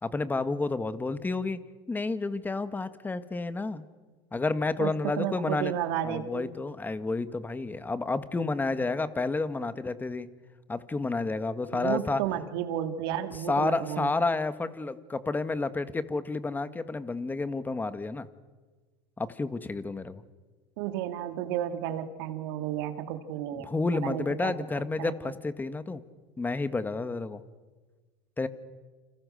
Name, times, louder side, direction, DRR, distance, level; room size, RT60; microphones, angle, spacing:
voice 1, 0.0-1.6 1.9-3.8 4.3-5.7 6.0-10.3 10.7-12.2 13.5-18.3 19.2-20.2 23.6-26.0 26.4-27.4 28.4-28.5, left 3 dB, 15° left, 12 dB, 1.7 m, -30 dB
voice 2, 4.8-6.5 11.7-14.1 20.8-23.7 23.9-25.3, right 11 dB, 70° right, 7 dB, 2.6 m, -33 dB
29.0 x 27.0 x 6.6 m, 1.4 s
supercardioid pair, 100°, 13 cm